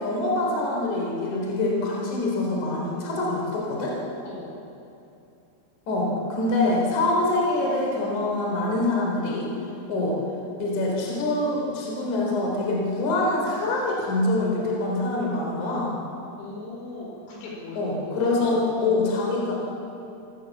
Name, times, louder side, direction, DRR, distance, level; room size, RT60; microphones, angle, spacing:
voice 1, 0.0-4.0 5.9-9.5 9.9-10.2 10.6-15.9 17.8-19.6, left 2 dB, 40° left, -3 dB, 4.8 m, -25 dB
voice 2, 4.2-4.6 16.4-19.0, left 2 dB, 60° left, -2 dB, 6.9 m, -38 dB
26.0 x 18.0 x 7.4 m, 2.8 s
omnidirectional pair, 6.0 m